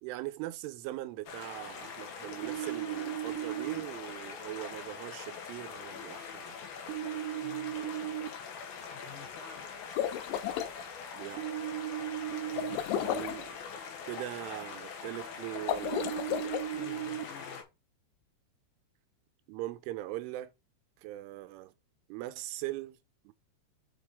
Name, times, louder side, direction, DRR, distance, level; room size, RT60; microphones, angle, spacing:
voice 1, 0.0-6.6 11.1-11.7 13.0-13.6 14.1-16.3 19.5-20.5 21.0-21.7 22.1-23.0 23.2-23.3, right 16 dB, 90° right, 3.3 m, -41 dB
sound 1, 1.3-17.6, left 6 dB, 65° left, 2.8 m, -43 dB
sound 2, 2.4-3.8 6.9-8.3 11.4-12.8 15.8-17.2, right 13 dB, 65° right, 2.0 m, -36 dB
voice 2, 7.4-7.9 8.9-9.7 12.5-13.2 16.7-17.7, left 5 dB, 40° left, 1.8 m, -52 dB
sound 3, 9.8-10.7 12.6-13.4 15.6-16.7, left 11 dB, 85° left, 3.0 m, -33 dB
7.8 x 5.7 x 3.5 m
omnidirectional pair, 5.5 m